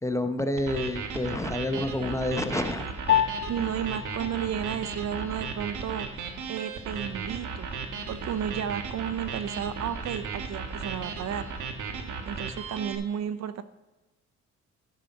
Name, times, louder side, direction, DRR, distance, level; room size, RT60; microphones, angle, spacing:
voice 1, 0.0-2.9, left 1 dB, 10° left, 8 dB, 0.9 m, -28 dB
sound 1, 0.6-12.9, right 5 dB, 80° right, 1.3 m, -36 dB
Piano, 3.1-12.7, left 10 dB, 45° left, 1.2 m, -35 dB
voice 2, 3.5-7.7 8.1-11.5 12.3-13.6, right 9 dB, 60° right, 14 dB, 0.6 m, -33 dB
12.0 x 5.6 x 5.3 m, 1.2 s
cardioid pair, 90°, 30 cm